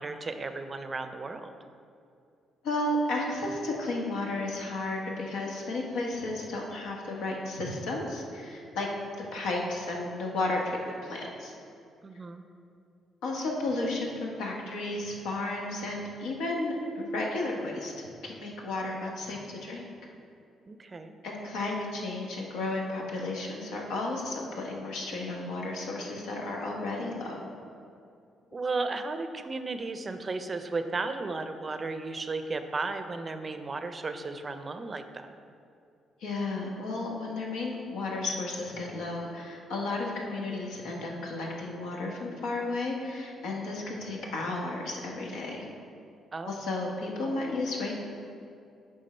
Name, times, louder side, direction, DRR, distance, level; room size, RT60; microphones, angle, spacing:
voice 1, 0.0-1.5 12.0-12.4 20.7-21.1 28.5-35.3 46.3-46.6, right 3 dB, 35° right, 8 dB, 0.5 m, -34 dB
voice 2, 2.6-8.9 9.3-11.5 13.2-19.9 21.2-27.4 36.2-45.6 46.5-47.9, left 2 dB, 90° left, -1 dB, 1.2 m, -33 dB
10.5 x 3.6 x 4.3 m, 2.5 s
cardioid pair, 90°, 0 cm